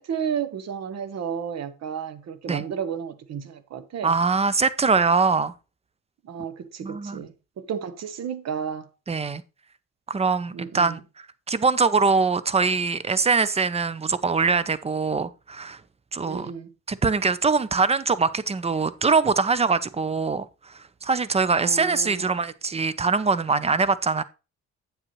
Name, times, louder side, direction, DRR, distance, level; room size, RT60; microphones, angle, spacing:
voice 1, 0.0-4.1 6.2-8.9 10.5-11.0 16.2-16.7 21.6-22.3, right 7 dB, 60° right, 1.1 m, -32 dB
voice 2, 4.0-5.5 6.8-7.2 9.1-9.4 10.1-15.8 16.1-16.5 16.9-24.2, right 4 dB, 20° right, 0.6 m, -23 dB
8.8 x 7.6 x 3.1 m
cardioid pair, 90°, 30 cm